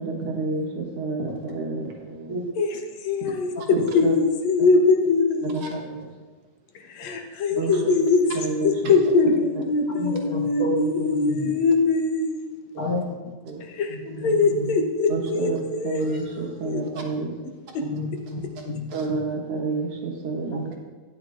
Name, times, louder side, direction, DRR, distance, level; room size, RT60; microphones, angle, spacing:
voice 1, 0.0-2.3 3.2-3.3 3.7-4.1 5.4-6.1 7.6-7.8 8.3-8.9 9.2-9.3 13.4-13.6 15.1-17.3 18.9-20.8, right 3 dB, 60° right, 0 dB, 1.9 m, -29 dB
voice 2, 2.6-5.6 6.8-8.2 8.6-12.5 13.6-16.8 17.8-17.9, left 4 dB, 70° left, 4 dB, 2.0 m, -22 dB
voice 3, 7.5-7.9 10.0-11.5 12.8-13.3 13.8-14.8 15.1-15.2 17.7-18.9 20.5-20.7, left 1 dB, 50° left, -3 dB, 1.9 m, -31 dB
13.0 x 10.5 x 2.4 m, 1.3 s
omnidirectional pair, 3.6 m